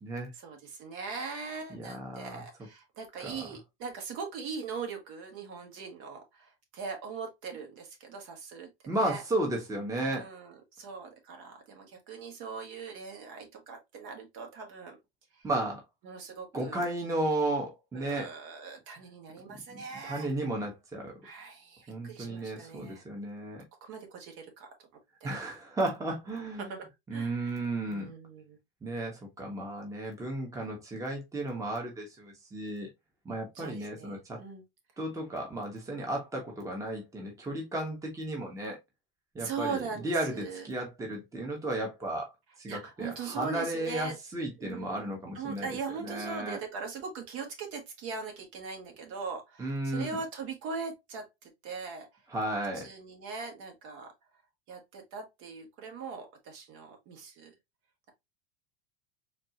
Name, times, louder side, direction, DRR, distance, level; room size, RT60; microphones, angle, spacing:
voice 1, 0.3-9.2 10.0-15.0 15.3-15.5 16.0-16.9 17.9-20.3 21.2-23.0 23.8-24.7 25.2-25.4 26.6-28.6 33.5-34.6 39.4-40.7 42.7-44.2 44.6-45.0 45.3-52.1 52.7-54.1 54.7-57.5, right 5 dB, 55° right, 1.7 m, -40 dB
voice 2, 1.7-2.4 3.2-3.4 8.9-10.3 15.4-15.8 16.5-18.3 20.0-21.1 21.9-23.6 25.2-26.7 27.1-28.1 28.8-32.9 33.2-34.4 35.0-38.8 39.3-42.3 42.6-45.7 46.0-46.6 49.6-50.1 52.3-52.9, right 1 dB, 10° right, 1.1 m, -34 dB
4.3 x 2.7 x 2.8 m
supercardioid pair, 125°, 29 cm